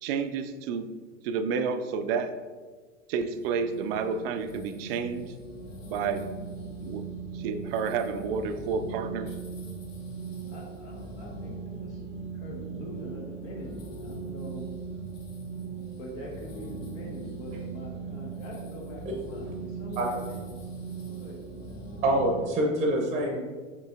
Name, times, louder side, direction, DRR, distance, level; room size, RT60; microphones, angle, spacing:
voice 1, 0.0-0.9 1.2-2.3 3.1-5.3 5.9-6.3 6.8-7.0 7.3-9.3, right 5 dB, 50° right, 8 dB, 0.5 m, -30 dB
sound 1, 3.3-22.5, right 4 dB, 80° left, 0.9 m, -39 dB
voice 2, 10.5-12.0 12.3-14.7 16.0-20.7 21.1-22.0, equal, 60° left, -1 dB, 1.3 m, -43 dB
voice 3, 22.0-23.4, right 1 dB, 20° right, 0 dB, 0.8 m, -25 dB
6.5 x 3.1 x 2.4 m, 1.4 s
figure-of-eight pair, 85°, 38 cm